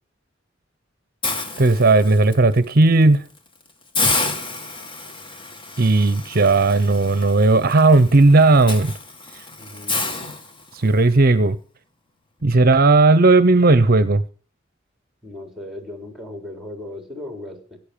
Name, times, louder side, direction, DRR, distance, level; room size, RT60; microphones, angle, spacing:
Hiss, 1.2-2.3 2.8-3.0 3.4-3.5 3.9-11.0, left 3 dB, 25° left, 2.3 m, -29 dB
voice 1, 1.6-3.2 5.8-8.9 10.7-11.6 12.4-14.2, right 3 dB, 50° right, 0.8 m, -15 dB
voice 2, 9.6-10.1 15.2-17.8, left 1 dB, ahead, 3.7 m, -37 dB
16.5 x 9.3 x 6.9 m
head